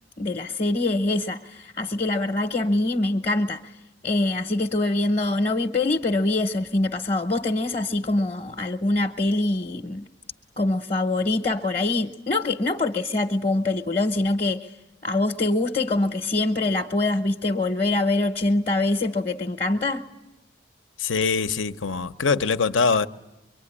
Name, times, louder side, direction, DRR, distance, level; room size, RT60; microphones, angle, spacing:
voice 1, 0.2-3.6 4.0-10.1 10.6-14.7 15.0-20.0, left 2 dB, 35° left, 0.9 m, -24 dB
voice 2, 21.0-23.1, left 5 dB, 80° left, 0.9 m, -23 dB
24.0 x 23.5 x 9.8 m
head